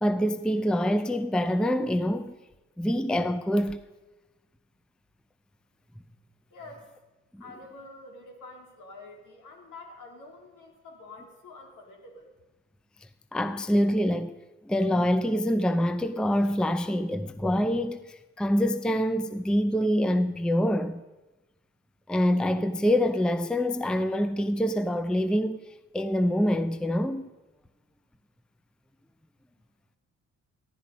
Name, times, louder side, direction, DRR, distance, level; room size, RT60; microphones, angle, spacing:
voice 1, 0.0-2.4 2.8-3.8 7.3-7.4 13.3-14.4 14.7-21.0 22.1-25.6 25.9-27.3, equal, 5° left, 0.5 m, -25 dB
voice 2, 6.5-6.9 7.4-12.3, left 2 dB, 85° left, 2.6 m, -47 dB
14.5 x 11.5 x 5.3 m
cardioid pair, 90°, 30 cm